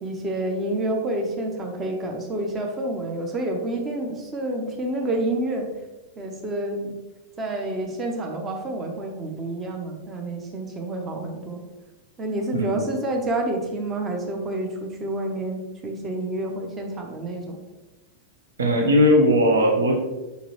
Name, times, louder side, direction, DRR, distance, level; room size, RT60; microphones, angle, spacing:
voice 1, 0.0-5.7 6.2-7.0 7.4-11.6 12.2-17.6, right 1 dB, 20° right, 2 dB, 1.0 m, -28 dB
voice 2, 18.6-20.0, equal, 70° right, 2 dB, 1.0 m, -18 dB
6.5 x 5.3 x 3.2 m, 1.1 s
figure-of-eight pair, 90°, 0 cm